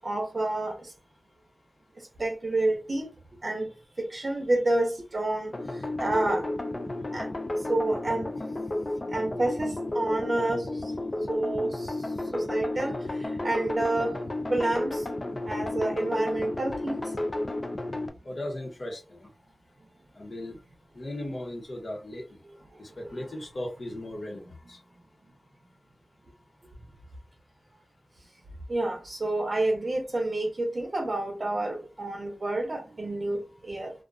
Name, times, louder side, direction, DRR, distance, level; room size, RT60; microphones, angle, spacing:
voice 1, 0.0-0.9 2.2-3.1 3.4-3.7 4.0-5.5 6.0-6.5 7.1-7.3 7.7-8.3 9.1-10.8 11.3-14.2 14.5-15.0 15.5-17.0 23.2-23.3 28.7-33.9, right 2 dB, 45° right, 0.6 m, -29 dB
sound 1, 5.5-18.1, left 1 dB, 35° left, 0.3 m, -32 dB
voice 2, 18.2-19.3 20.2-20.6 20.9-22.2 22.8-24.4 24.7-24.8, left 1 dB, 60° left, 0.9 m, -37 dB
2.4 x 2.2 x 2.4 m
wide cardioid pair, 70°, 0 cm